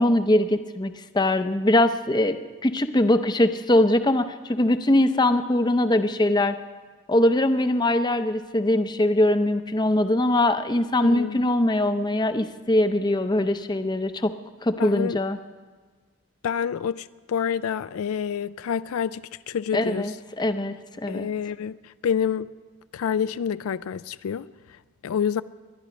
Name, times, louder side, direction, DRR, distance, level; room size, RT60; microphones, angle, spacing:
voice 1, 0.0-6.6 7.1-14.3 14.6-15.4 19.7-21.3, left 1 dB, 20° left, 0.6 m, -22 dB
voice 2, 11.0-11.5 14.8-15.2 16.4-20.1 21.1-22.5 22.9-24.5 25.0-25.4, left 7 dB, 75° left, 0.3 m, -28 dB
23.5 x 11.0 x 5.1 m
head